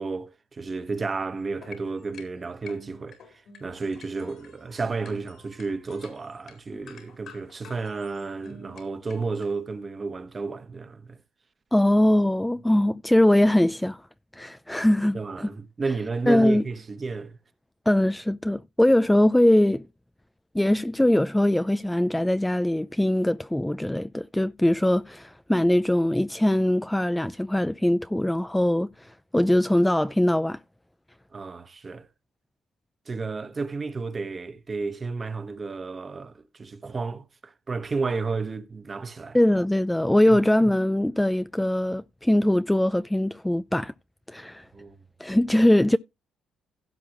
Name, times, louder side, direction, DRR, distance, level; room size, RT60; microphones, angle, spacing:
voice 1, 0.0-11.2 15.1-17.4 31.3-32.1 33.1-39.4 40.2-40.4 44.7-45.0, right 4 dB, 35° right, 1.3 m, -32 dB
sound 1, 1.4-9.5, left 4 dB, 70° left, 4.1 m, -49 dB
voice 2, 11.7-14.0 14.4-15.5 16.3-16.6 17.9-19.9 20.5-30.6 39.3-43.9 44.3-44.6 45.2-46.0, left 1 dB, 5° left, 0.4 m, -22 dB
16.5 x 6.0 x 3.1 m
supercardioid pair, 80°, 0 cm